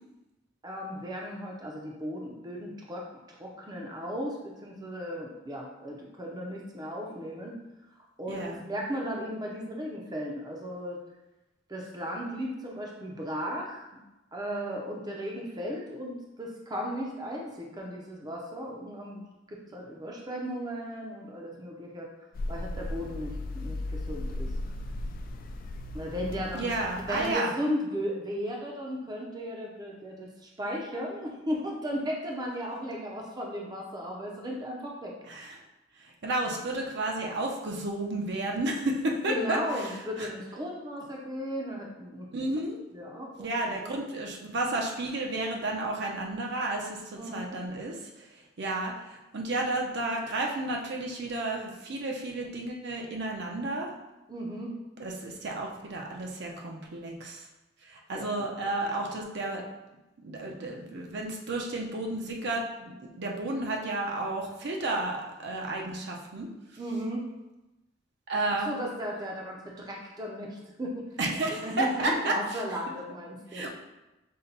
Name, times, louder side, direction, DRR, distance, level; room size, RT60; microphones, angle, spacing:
voice 1, 0.6-7.6 8.2-11.0 11.7-13.9 14.3-22.1 22.5-24.5 25.9-35.2 39.3-42.3 42.9-43.5 43.8-43.9 47.1-47.6 54.3-54.7 58.1-58.3 58.6-58.7 66.8-67.2 68.5-73.6, equal, 20° right, -2 dB, 0.6 m, -36 dB
voice 2, 8.3-8.6 26.5-27.5 35.3-35.5 36.0-39.6 40.2-40.3 42.3-42.8 43.4-48.3 48.6-53.9 55.0-57.4 57.9-59.7 60.2-62.9 63.2-66.5 68.3-68.8 71.2-72.6 73.5-73.7, right 2 dB, 60° right, 0 dB, 0.7 m, -32 dB
sound 1, 22.3-27.3, left 1 dB, 45° left, 0.3 m, -36 dB
5.6 x 2.2 x 3.9 m, 1.0 s
head